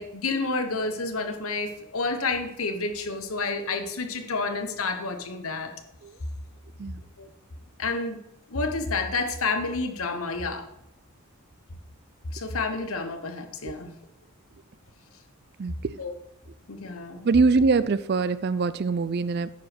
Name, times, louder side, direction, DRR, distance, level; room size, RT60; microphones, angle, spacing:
voice 1, 0.0-5.7 7.2-7.3 7.8-8.2 8.5-10.7 12.3-13.9 16.0-16.1 16.7-17.3, left 3 dB, 70° left, 6 dB, 1.1 m, -29 dB
voice 2, 15.6-16.0 17.2-19.5, right 4 dB, 45° right, 15 dB, 0.4 m, -23 dB
9.4 x 5.0 x 6.1 m, 0.83 s
head